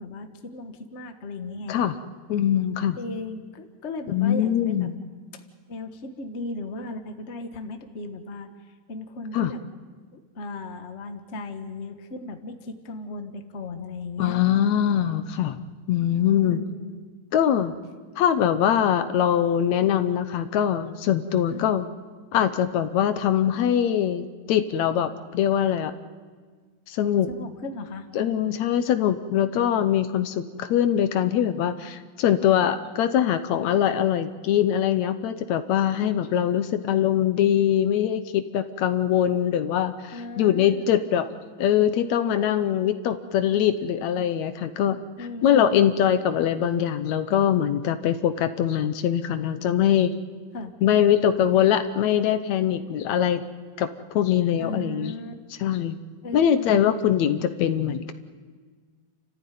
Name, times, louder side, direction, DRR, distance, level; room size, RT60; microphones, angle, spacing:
voice 1, 0.0-1.8 2.9-4.9 5.7-8.5 8.9-9.6 10.1-14.4 16.4-17.0 21.5-21.6 27.3-28.1 40.1-40.8 45.2-45.9 50.5-50.7 54.6-55.3 56.2-56.9, left 2 dB, 35° left, 6 dB, 1.1 m, -36 dB
voice 2, 2.3-3.0 4.1-5.0 9.3-9.5 14.2-16.6 17.3-17.8 18.2-21.9 22.3-25.9 26.9-27.3 28.2-41.3 41.6-45.0 45.4-50.1 50.8-53.5 53.8-55.1 55.6-56.0 56.3-58.1, left 10 dB, 75° left, 10 dB, 2.1 m, -22 dB
29.5 x 14.5 x 9.3 m, 1.5 s
omnidirectional pair, 3.3 m